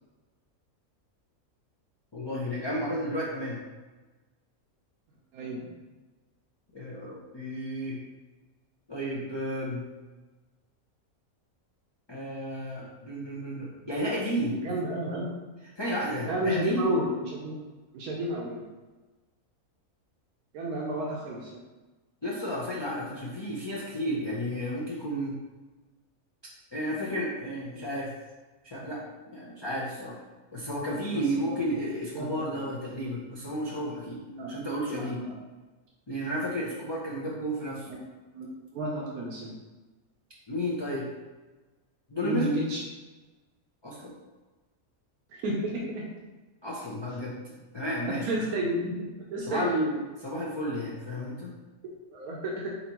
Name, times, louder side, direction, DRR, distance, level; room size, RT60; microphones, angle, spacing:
voice 1, 2.1-3.6 6.7-8.0 8.9-9.8 12.1-14.6 15.8-16.9 22.2-25.3 26.7-28.1 28.6-30.2 30.5-34.2 34.5-35.2 36.1-37.9 40.5-41.1 42.1-42.6 43.8-44.1 46.6-47.4 47.7-48.3 49.5-49.8 50.2-51.5, equal, 35° left, -6 dB, 0.4 m, -32 dB
voice 2, 5.3-5.7 14.6-15.3 16.3-17.5 17.9-18.6 20.5-21.6 31.1-31.6 32.1-32.4 34.3-34.6 34.9-35.3 37.9-38.0 38.3-38.5 38.7-39.6 42.2-42.8 45.3-46.1 48.0-50.0 51.8-52.7, right 1 dB, 85° right, -3 dB, 1.2 m, -31 dB
4.2 x 4.0 x 2.9 m, 1.2 s
omnidirectional pair, 1.5 m